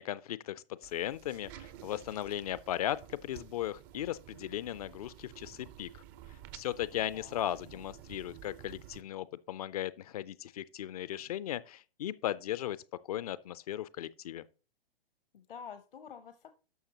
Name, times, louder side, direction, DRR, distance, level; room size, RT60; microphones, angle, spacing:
voice 1, 0.0-6.0 6.5-12.8 13.1-14.4, left 12 dB, 40° left, 0.4 m, -37 dB
sound 1, 0.8-9.0, right 12 dB, 25° right, 0.4 m, -52 dB
voice 2, 7.0-7.8 15.3-16.5, left 7 dB, 65° left, 0.8 m, -49 dB
12.0 x 6.3 x 2.9 m
figure-of-eight pair, 115°, 30 cm